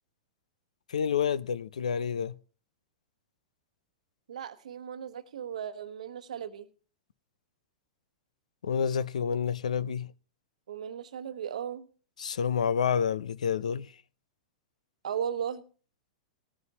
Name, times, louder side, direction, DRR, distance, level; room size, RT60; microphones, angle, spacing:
voice 1, 0.9-2.3 8.6-10.1 12.2-13.9, left 7 dB, 85° left, 0.5 m, -28 dB
voice 2, 4.3-6.7 10.7-11.9 15.0-15.6, right 8 dB, 80° right, 1.0 m, -36 dB
19.0 x 9.5 x 2.9 m
hypercardioid pair, 115°, 4 cm